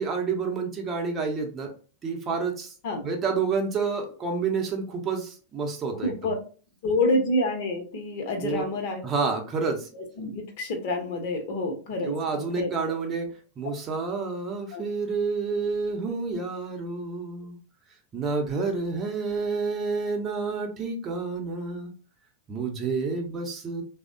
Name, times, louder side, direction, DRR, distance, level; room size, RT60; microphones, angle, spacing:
voice 1, 0.0-1.7 2.0-2.7 3.0-6.3 8.4-8.7 9.0-9.9 12.0-13.3 13.6-17.6 18.1-21.9 22.5-23.8, right 4 dB, 25° right, 2 dB, 0.7 m, -29 dB
voice 2, 6.0-6.3 6.8-9.0 10.2-12.7 13.6-13.7 14.7-14.8, left 2 dB, 50° left, 4 dB, 0.7 m, -28 dB
3.2 x 2.1 x 2.5 m, 0.37 s
figure-of-eight pair, 90°, 0 cm